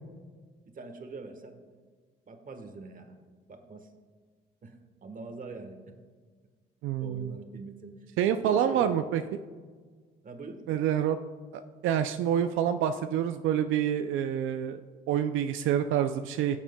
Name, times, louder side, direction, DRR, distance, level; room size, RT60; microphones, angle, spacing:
voice 1, 0.7-1.7 2.3-3.1 3.5-3.9 4.6-5.8 7.0-8.0 8.3-9.1 10.2-10.6, right 3 dB, 45° right, 6 dB, 1.2 m, -43 dB
voice 2, 6.8-7.3 8.2-9.2 10.7-11.2 11.8-14.8 15.1-16.6, right 9 dB, 85° right, 8 dB, 0.4 m, -27 dB
16.0 x 7.3 x 2.2 m, 1.5 s
cardioid pair, 90°, 20 cm